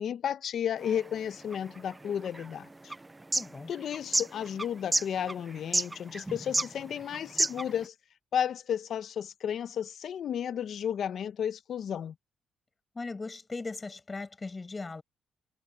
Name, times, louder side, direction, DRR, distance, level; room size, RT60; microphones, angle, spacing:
voice 1, 0.0-2.9 3.7-7.9 8.3-12.1, left 9 dB, 65° left, 1.0 m, -33 dB
sound 1, 0.8-7.9, right 2 dB, 15° right, 0.6 m, -32 dB
voice 2, 3.4-3.7 12.9-15.0, left 3 dB, 25° left, 7.6 m, -38 dB
cardioid pair, 90°, 0 cm